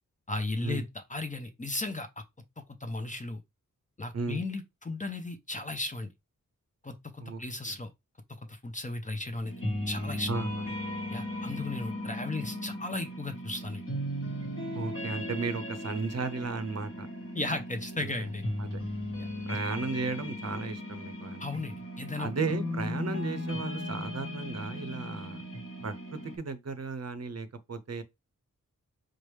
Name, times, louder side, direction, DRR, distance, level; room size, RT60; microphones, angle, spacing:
voice 1, 0.3-2.2 2.8-3.4 4.0-6.1 6.8-7.9 8.5-9.5 9.9-10.3 11.1-13.8 17.3-18.4 19.2-19.6 21.4-22.3, left 2 dB, 25° left, 0.6 m, -35 dB
sound 1, 9.4-26.4, left 1 dB, 40° left, 1.2 m, -37 dB
voice 2, 10.3-10.7 14.7-17.1 18.0-18.3 18.6-18.8 19.5-21.5 22.2-25.4 25.8-28.0, right 4 dB, 50° right, 0.7 m, -35 dB
4.7 x 2.1 x 3.2 m
wide cardioid pair, 80°, 33 cm